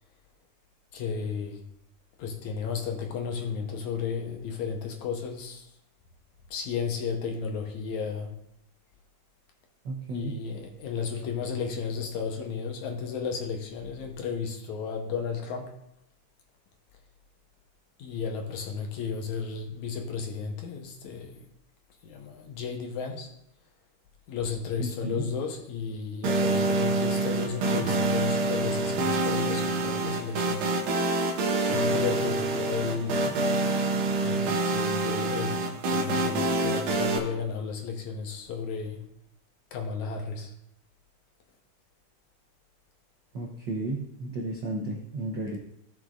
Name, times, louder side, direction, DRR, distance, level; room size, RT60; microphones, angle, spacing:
voice 1, 0.9-1.6 2.2-5.7 6.5-8.4 10.1-15.8 18.0-21.3 22.0-23.3 24.3-30.7 31.6-33.3 34.2-39.0 39.7-40.5, left 6 dB, 75° left, 2 dB, 2.3 m, -33 dB
voice 2, 9.8-10.3 24.8-25.2 43.3-45.6, right 2 dB, 80° right, -1 dB, 1.0 m, -33 dB
sound 1, 26.2-37.2, right 2 dB, 65° right, 1.9 m, -26 dB
15.5 x 6.6 x 2.5 m, 0.77 s
omnidirectional pair, 3.6 m